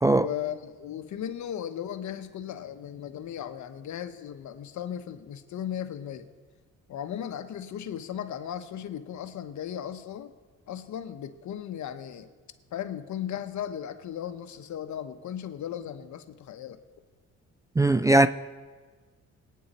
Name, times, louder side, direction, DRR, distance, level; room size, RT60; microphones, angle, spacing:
voice 1, 0.2-6.3 6.9-10.3 10.7-12.3 12.7-16.8, left 9 dB, 70° left, 1.1 m, -36 dB
voice 2, 17.8-18.3, right 2 dB, 10° right, 0.3 m, -19 dB
24.5 x 9.4 x 4.3 m
cardioid pair, 90°, 30 cm